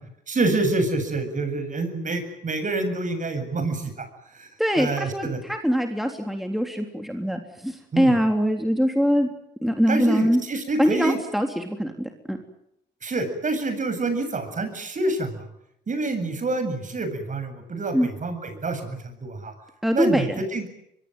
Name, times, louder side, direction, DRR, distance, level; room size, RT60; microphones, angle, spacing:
voice 1, 0.3-4.1 4.3-4.5 4.8-5.4 7.9-8.1 9.9-11.2 13.0-15.4 15.9-19.5 19.9-20.7, right 3 dB, 40° right, 9 dB, 7.7 m, -27 dB
voice 2, 4.6-9.3 9.6-10.4 10.8-12.4 17.9-18.1 19.8-20.4, equal, ahead, 4 dB, 3.5 m, -23 dB
23.5 x 23.0 x 9.2 m, 0.78 s
cardioid pair, 90°, 20 cm